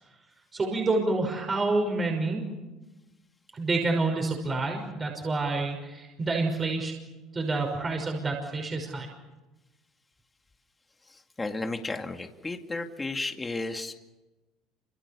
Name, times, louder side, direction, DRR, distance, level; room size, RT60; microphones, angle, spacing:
voice 1, 0.5-2.4 3.5-6.9 7.3-9.1, right 3 dB, 25° right, 1 dB, 5.8 m, -28 dB
voice 2, 11.4-13.9, left 3 dB, 15° left, 4 dB, 2.3 m, -33 dB
29.0 x 26.5 x 7.1 m, 1.1 s
cardioid pair, 115°, 0 cm